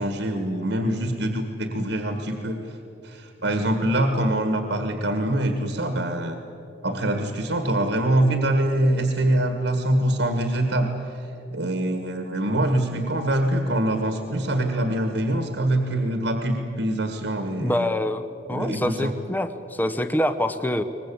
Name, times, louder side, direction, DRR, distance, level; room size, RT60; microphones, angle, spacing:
voice 1, 0.0-2.8 3.0-6.3 6.8-10.9 11.5-17.9 18.5-19.1, right 1 dB, 70° right, 6 dB, 1.7 m, -24 dB
voice 2, 17.6-20.8, left 1 dB, 10° left, 10 dB, 0.8 m, -25 dB
23.5 x 20.0 x 8.6 m, 2.9 s
head